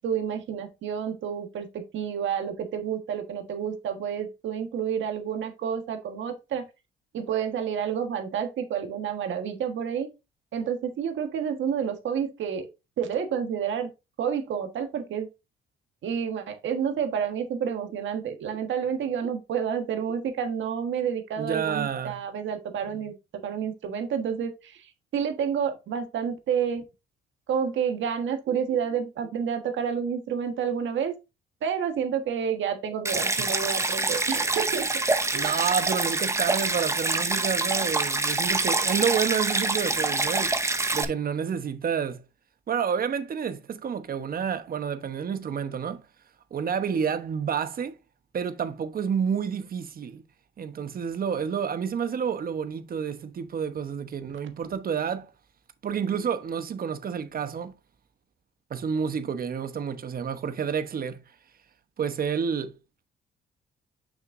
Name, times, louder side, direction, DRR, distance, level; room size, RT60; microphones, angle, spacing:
voice 1, 0.0-6.6 7.1-10.1 10.5-12.7 13.0-13.9 14.2-15.3 16.0-23.1 23.4-26.8 27.5-31.1 31.6-34.9 35.3-35.5, right 7 dB, 70° right, 1.4 m, -29 dB
voice 2, 21.4-22.2 35.3-40.6 40.9-42.2 42.7-46.0 46.5-47.9 48.3-50.2 50.6-55.3 55.8-57.7 58.7-61.2 62.0-62.7, right 7 dB, 45° right, 1.0 m, -29 dB
Stream, 33.1-41.1, right 3 dB, 15° right, 0.8 m, -26 dB
6.5 x 6.2 x 2.6 m
cardioid pair, 90°, 20 cm